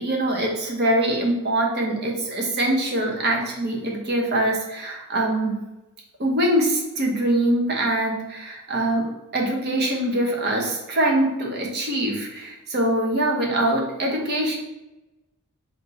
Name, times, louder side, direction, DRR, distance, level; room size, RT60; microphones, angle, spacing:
voice 1, 0.0-5.5 6.2-14.6, right 1 dB, 50° right, -1 dB, 1.0 m, -23 dB
4.4 x 2.8 x 3.9 m, 1.0 s
head